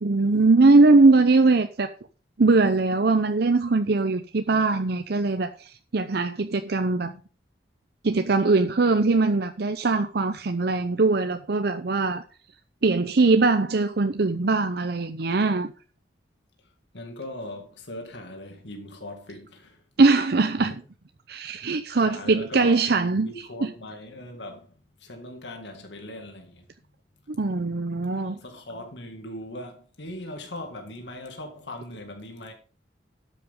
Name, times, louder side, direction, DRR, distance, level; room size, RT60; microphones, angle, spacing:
voice 1, 0.0-1.9 2.4-7.1 8.0-12.2 12.8-15.7 20.0-20.7 21.3-23.3 23.6-23.7 27.3-28.4, right 3 dB, 60° right, 0.7 m, -21 dB
voice 2, 16.9-19.8 20.7-20.8 21.9-22.8 23.2-26.7 28.2-32.5, left 1 dB, 75° left, 2.2 m, -39 dB
12.5 x 7.5 x 3.7 m
head